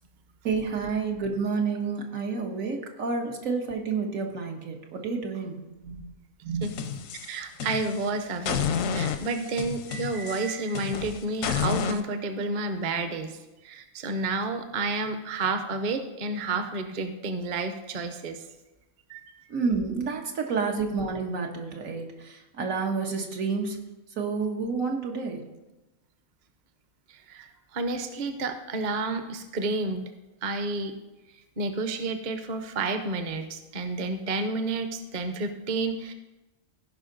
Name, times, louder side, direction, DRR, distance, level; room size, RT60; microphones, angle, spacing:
voice 1, 0.4-5.6 5.8-6.1 6.4-6.7 19.5-23.8 24.2-25.4, right 4 dB, 80° right, 1 dB, 1.6 m, -29 dB
sound 1, 6.6-8.1 8.5-12.0, left 7 dB, 80° left, 1.0 m, -30 dB
voice 2, 7.2-13.3 13.6-18.4 19.1-19.2 27.3-30.0 30.4-30.9 31.6-36.1, right 3 dB, 45° right, 8 dB, 0.7 m, -30 dB
15.5 x 5.4 x 3.9 m, 1.0 s
omnidirectional pair, 1.4 m